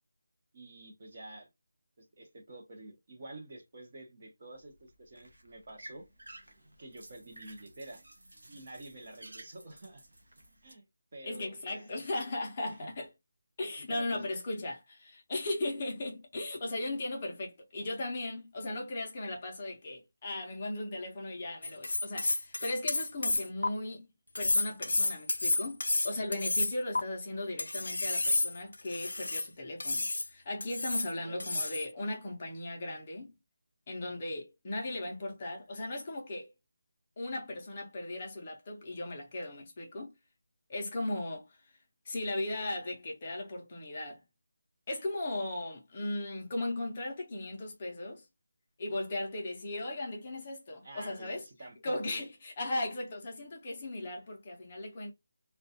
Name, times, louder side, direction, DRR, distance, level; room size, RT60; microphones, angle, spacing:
voice 1, 0.5-1.5 2.0-6.1 6.8-8.0 8.5-10.0 10.6-10.8 11.1-12.1 12.6-12.9 13.9-14.3 31.2-31.5 50.8-52.2, right 2 dB, 30° right, 0.6 m, -49 dB
sound 1, 4.5-10.7, right 1 dB, 80° right, 0.7 m, -54 dB
voice 2, 11.2-13.1 13.6-24.1 24.4-33.3 33.9-36.5 37.2-40.1 40.7-41.6 42.1-44.2 44.9-48.3 48.8-51.4 51.8-55.1, left 2 dB, 20° left, 0.5 m, -37 dB
sound 2, 21.6-23.7 24.4-27.0 27.6-29.5 29.8-30.3 30.6-31.1 31.4-31.9, left 2 dB, 85° left, 0.4 m, -30 dB
2.2 x 2.1 x 2.7 m
figure-of-eight pair, 180°, 0 cm